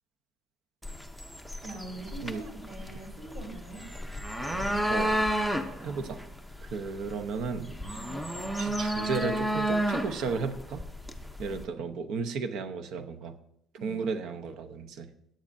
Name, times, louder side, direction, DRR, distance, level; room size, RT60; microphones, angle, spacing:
sound 1, 0.8-11.6, right 1 dB, ahead, 0.6 m, -32 dB
voice 1, 1.6-3.9 8.0-8.2 11.4-11.7 13.8-14.1, right 2 dB, 40° right, 0 dB, 3.5 m, -43 dB
voice 2, 5.8-6.2 6.6-7.7 8.6-10.8 11.4-13.4 13.8-15.1, right 5 dB, 60° right, 9 dB, 0.9 m, -34 dB
16.0 x 10.0 x 2.6 m, 0.72 s
cardioid pair, 170°, 0 cm